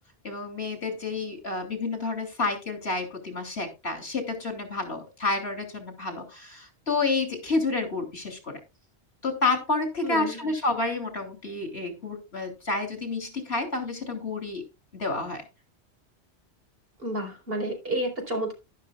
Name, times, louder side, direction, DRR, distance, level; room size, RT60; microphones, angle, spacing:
voice 1, 0.2-8.6 9.2-14.6 14.9-15.4, left 3 dB, 65° left, 3.4 m, -29 dB
voice 2, 10.0-10.4 17.0-18.5, right 1 dB, 55° right, 4.3 m, -30 dB
12.0 x 11.5 x 2.3 m
omnidirectional pair, 1.1 m